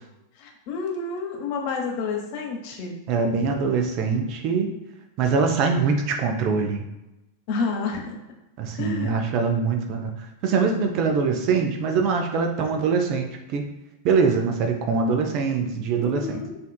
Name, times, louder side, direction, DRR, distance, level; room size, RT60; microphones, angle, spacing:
voice 1, 0.4-2.9 7.5-8.2 8.8-9.1 16.0-16.6, left 4 dB, 50° left, 1 dB, 0.8 m, -29 dB
voice 2, 3.1-4.7 5.2-6.8 8.6-13.6 14.0-16.4, right 5 dB, 40° right, 4 dB, 0.5 m, -23 dB
5.0 x 2.4 x 2.3 m, 0.98 s
figure-of-eight pair, 90°, 0 cm